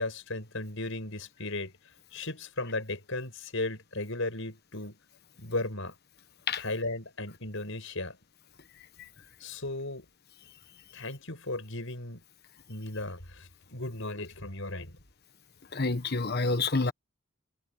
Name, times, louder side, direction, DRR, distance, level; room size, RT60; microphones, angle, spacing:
voice 1, 0.0-1.7 2.1-5.0 5.4-5.9 6.6-8.2 9.4-10.1 10.9-12.2 12.7-14.9, left 2 dB, 65° left, 7.4 m, -35 dB
voice 2, 15.7-16.9, left 3 dB, 50° left, 1.3 m, -28 dB
head